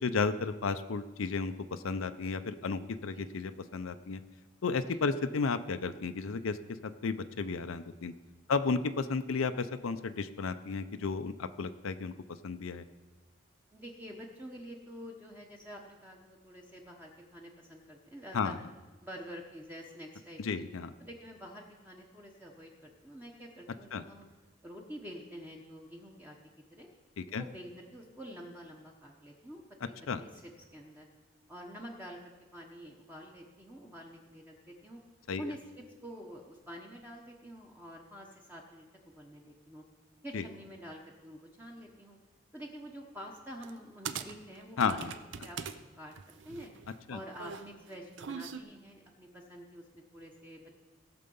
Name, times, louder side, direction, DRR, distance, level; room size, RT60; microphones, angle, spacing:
voice 1, 0.0-4.2 4.6-6.6 6.8-8.1 8.5-12.1 12.4-12.8 18.3-18.6 20.4-20.9 23.9-24.0 27.2-27.4 30.1-30.2 35.3-35.4 40.3-40.4 44.8-45.1 47.1-47.2, left 4 dB, 85° left, 9 dB, 0.5 m, -33 dB
voice 2, 13.7-18.6 19.0-20.6 21.0-24.2 24.6-26.4 26.7-26.9 27.3-31.1 31.5-35.0 35.4-39.8 40.2-42.2 42.5-45.0 45.4-45.6 46.0-46.1 46.4-46.7 47.1-50.8, equal, 10° right, -1 dB, 0.9 m, -48 dB
sound 1, 43.6-43.8 44.1-45.8 46.1-48.6, right 6 dB, 65° right, 0.6 m, -41 dB
17.5 x 6.7 x 5.4 m, 1.2 s
head